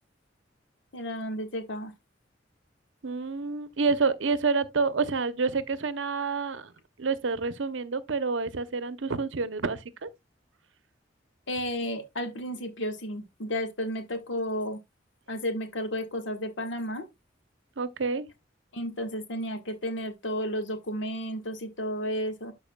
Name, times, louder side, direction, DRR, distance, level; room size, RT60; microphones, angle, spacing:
voice 1, 0.9-1.9 11.5-14.8 15.3-17.0 18.7-22.5, equal, 75° left, 1.5 m, -32 dB
voice 2, 3.0-6.7 7.0-10.1 17.8-18.3, right 4 dB, 85° right, 0.8 m, -28 dB
12.5 x 4.8 x 2.3 m
head